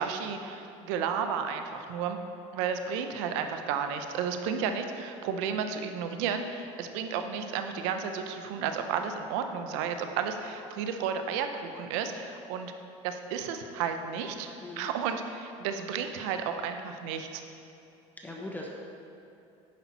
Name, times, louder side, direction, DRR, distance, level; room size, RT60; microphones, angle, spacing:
voice 1, 0.0-2.2 2.5-12.7 13.0-17.4, right 7 dB, 75° right, 7 dB, 0.8 m, -32 dB
voice 2, 14.6-14.9 18.2-18.7, left 2 dB, 10° left, -1 dB, 1.0 m, -40 dB
10.5 x 5.4 x 4.2 m, 2.8 s
supercardioid pair, 100°, 15 cm